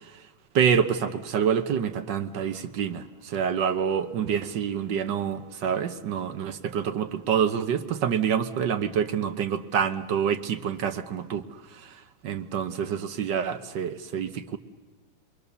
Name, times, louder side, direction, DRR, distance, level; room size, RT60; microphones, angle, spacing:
voice 1, 0.5-11.4 11.7-11.9 12.2-14.6, right 8 dB, 65° right, 9 dB, 1.6 m, -27 dB
29.5 x 22.0 x 6.9 m, 1.3 s
omnidirectional pair, 2.2 m